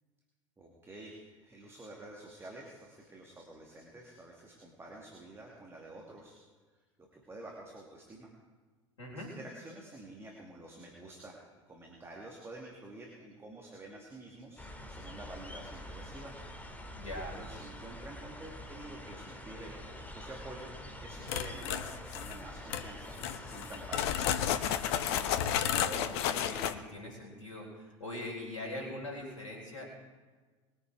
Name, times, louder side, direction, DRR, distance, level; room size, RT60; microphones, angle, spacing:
voice 1, 0.6-6.4 7.1-8.3 9.1-11.4 11.7-16.4 17.3-20.7 21.0-24.5, right 2 dB, 15° right, -1 dB, 2.5 m, -49 dB
voice 2, 9.0-9.3 17.0-17.4 25.6-29.9, left 1 dB, 75° left, -6 dB, 4.2 m, -42 dB
sound 1, 14.6-25.5, left 1 dB, 10° left, 2.6 m, -46 dB
sound 2, 21.3-22.4 22.7-22.8 23.2-26.7, left 10 dB, 55° left, 1.0 m, -32 dB
21.5 x 9.5 x 4.8 m, 1.4 s
figure-of-eight pair, 75°, 17 cm